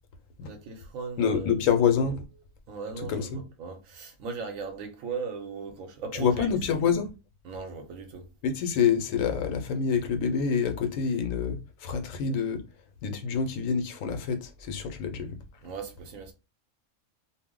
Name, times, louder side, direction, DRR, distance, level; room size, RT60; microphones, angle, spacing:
voice 1, 0.5-1.6 2.7-6.5 7.4-8.3 15.6-16.3, right 5 dB, 85° right, 1.1 m, -38 dB
voice 2, 1.2-2.2 3.1-3.4 6.1-7.1 8.4-12.6 13.0-15.4, left 6 dB, 80° left, 1.0 m, -27 dB
2.4 x 2.0 x 3.6 m
omnidirectional pair, 1.4 m